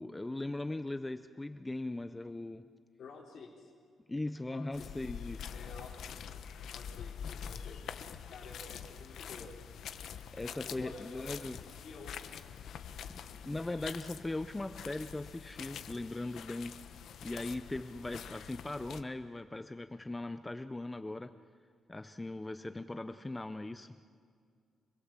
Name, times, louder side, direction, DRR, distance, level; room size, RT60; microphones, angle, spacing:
voice 1, 0.0-2.6 4.1-5.5 10.3-11.6 13.4-16.8 17.2-21.4 21.9-24.0, left 2 dB, 10° left, 10 dB, 0.5 m, -39 dB
voice 2, 3.0-3.7 4.5-4.9 5.5-6.4 6.7-7.9 8.3-9.6 10.4-12.3 13.6-13.7, left 3 dB, 55° left, -4 dB, 3.5 m, -51 dB
sound 1, 4.7-19.0, left 8 dB, 70° left, 1.0 m, -45 dB
26.5 x 21.0 x 7.4 m, 2.2 s
cardioid pair, 165°, 0 cm